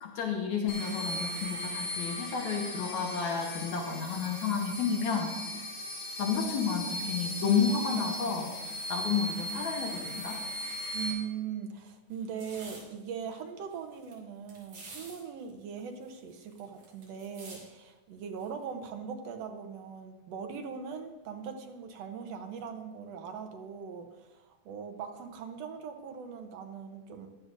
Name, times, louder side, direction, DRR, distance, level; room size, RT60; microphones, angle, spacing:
voice 1, 0.0-5.7 6.2-8.5 8.9-10.4, left 6 dB, 75° left, 1 dB, 2.4 m, -31 dB
sound 1, 0.7-11.1, left 1 dB, 50° left, 3.2 m, -38 dB
voice 2, 10.9-27.3, right 6 dB, 70° right, 5 dB, 1.9 m, -40 dB
sound 2, 12.1-12.8 13.3-13.4 13.6-14.1 14.5-15.2 15.5-15.6 15.8-17.6 18.4-18.6, right 3 dB, 85° right, 4.9 m, -49 dB
14.5 x 11.0 x 2.6 m, 1.2 s
omnidirectional pair, 3.3 m